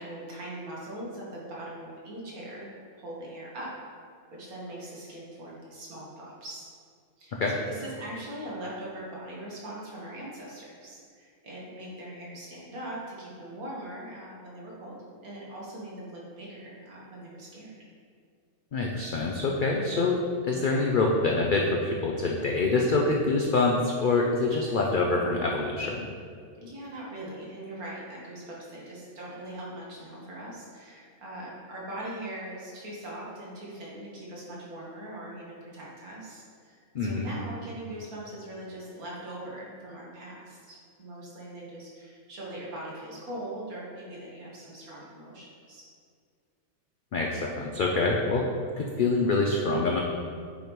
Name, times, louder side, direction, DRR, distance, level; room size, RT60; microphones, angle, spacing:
voice 1, 0.0-3.7 4.3-6.7 7.2-17.8 26.6-45.8, right 1 dB, 75° right, -5 dB, 1.8 m, -41 dB
voice 2, 18.7-20.2 20.4-26.1 36.9-37.3 47.1-48.5 48.8-50.0, left 3 dB, 65° left, -1 dB, 0.5 m, -25 dB
8.5 x 5.2 x 3.0 m, 2.2 s
omnidirectional pair, 1.5 m